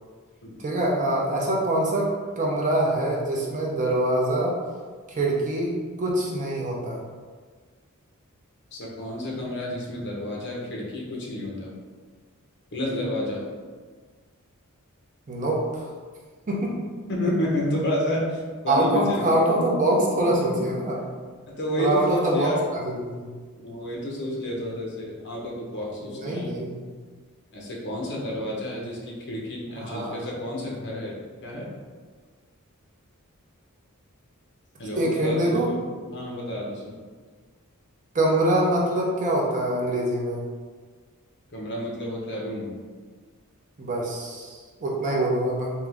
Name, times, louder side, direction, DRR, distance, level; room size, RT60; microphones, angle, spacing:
voice 1, 0.6-2.1 2.4-4.6 5.1-7.0 12.9-13.0 15.3-15.8 16.5-16.7 18.7-21.0 21.8-22.5 22.8-23.3 26.0-26.8 29.7-30.2 35.0-35.7 38.1-40.4 43.8-45.7, right 1 dB, 35° right, -3 dB, 0.7 m, -24 dB
voice 2, 8.7-11.7 12.7-13.5 17.1-19.3 19.6-19.7 19.9-20.5 21.5-22.6 23.6-26.5 27.5-31.1 31.4-31.7 34.8-35.8 36.1-36.9 41.5-42.8, left 1 dB, 55° left, -3 dB, 0.9 m, -30 dB
3.6 x 2.8 x 3.4 m, 1.5 s
head